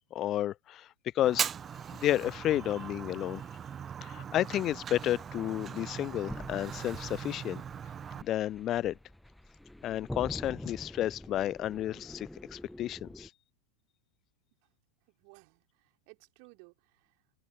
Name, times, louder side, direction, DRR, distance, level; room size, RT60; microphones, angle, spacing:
voice 1, 0.1-0.9 1.1-1.5 2.0-3.4 4.0-7.6 8.2-9.0 9.8-13.3, left 12 dB, 30° left, 0.4 m, -31 dB
Fire, 1.2-8.2, right 8 dB, 25° right, 1.0 m, -39 dB
sound 1, 4.7-13.3, left 1 dB, 5° left, 1.4 m, -46 dB
voice 2, 15.1-17.2, right 40 dB or more, 45° right, 5.3 m, -58 dB
open air
figure-of-eight pair, 90°, 0 cm